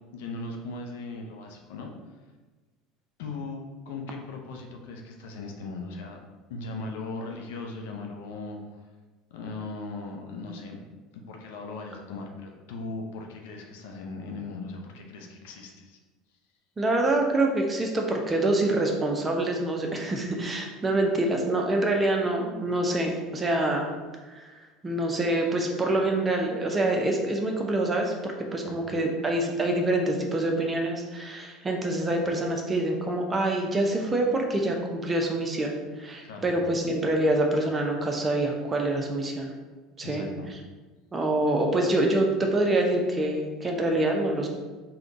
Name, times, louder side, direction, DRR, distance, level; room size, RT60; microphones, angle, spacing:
voice 1, 0.1-1.9 3.2-6.2 6.5-8.6 9.3-10.8 11.1-16.0 28.6-28.8 36.2-36.5 40.0-40.5, left 3 dB, 65° left, 2 dB, 0.5 m, -38 dB
voice 2, 16.8-23.9 24.3-24.5 24.8-39.5 40.0-40.3 41.1-44.5, right 2 dB, 25° right, 1 dB, 0.7 m, -26 dB
3.6 x 2.3 x 3.7 m, 1.3 s
figure-of-eight pair, 70°, 0 cm